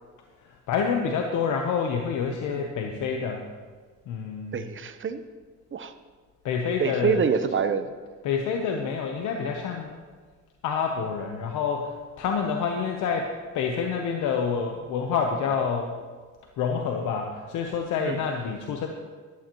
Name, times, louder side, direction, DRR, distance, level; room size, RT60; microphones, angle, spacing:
voice 1, 0.4-3.4 4.1-4.6 6.4-7.2 8.2-10.0 10.6-15.9 16.6-18.9, left 6 dB, 90° left, 3 dB, 0.9 m, -28 dB
voice 2, 4.5-5.2 5.7-5.9 6.8-7.9 18.0-18.2, right 6 dB, 40° right, 10 dB, 0.9 m, -26 dB
14.5 x 11.5 x 3.0 m, 1.5 s
cardioid pair, 90°, 30 cm